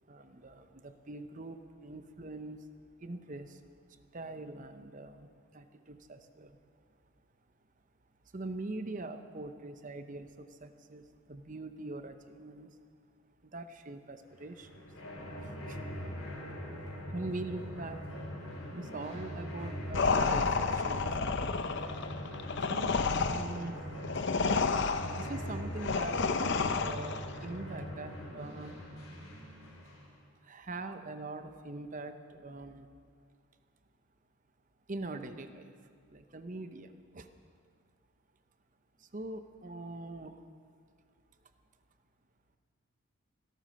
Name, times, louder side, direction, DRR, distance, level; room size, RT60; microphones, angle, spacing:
voice 1, 0.1-2.7 3.0-3.6 3.9-6.6 8.3-12.8 13.4-14.8 15.4-15.8 17.1-18.0 18.7-21.7 22.7-23.8 25.1-28.7 30.4-32.9 34.9-35.7 36.1-37.3 39.0-40.4, right 2 dB, 35° right, 9 dB, 0.8 m, -43 dB
sound 1, 14.4-30.1, equal, 75° left, 3.6 m, -42 dB
sound 2, 19.9-27.3, left 4 dB, 55° left, 0.7 m, -30 dB
17.0 x 12.5 x 6.4 m, 2.2 s
head